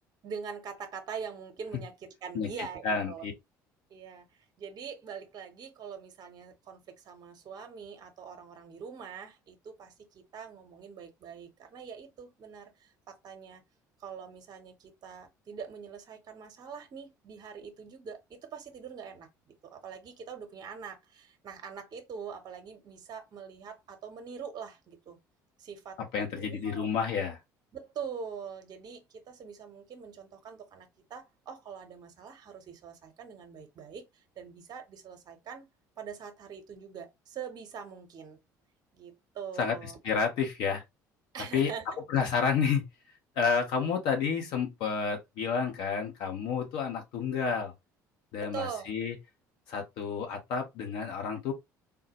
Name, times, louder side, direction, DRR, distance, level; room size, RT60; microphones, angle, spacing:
voice 1, 0.2-3.2 3.9-13.6 14.0-25.2 25.6-27.0 27.7-35.7 36.0-38.4 38.9-40.0 41.3-42.0 48.4-48.9, right 6 dB, 45° right, 0.8 m, -43 dB
voice 2, 2.8-3.3 26.1-27.4 39.6-40.8 41.5-41.7 42.1-42.9 43.4-47.7 48.3-49.1 49.7-51.5, left 6 dB, 60° left, 1.0 m, -30 dB
3.7 x 2.1 x 2.8 m
hypercardioid pair, 60°, 10 cm